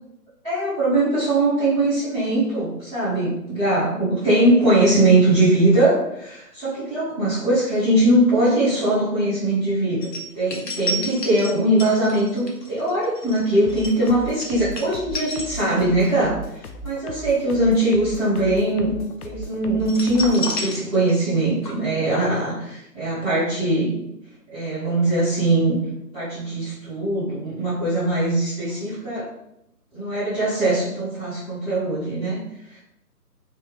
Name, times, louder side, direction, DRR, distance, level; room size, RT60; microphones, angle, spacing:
voice 1, 0.4-10.1 10.3-16.3 16.8-18.9 19.2-23.9 24.5-25.8 26.1-29.3 29.9-32.4, right 1 dB, 5° right, -21 dB, 1.0 m, -21 dB
sound 1, 10.0-16.1 16.4-16.7 19.8-21.4 21.6-21.7, left 1 dB, 85° left, 1.1 m, -31 dB
sound 2, 13.6-20.5, equal, 65° left, 0.5 m, -37 dB
3.4 x 2.8 x 3.1 m, 0.82 s
figure-of-eight pair, 145°, 48 cm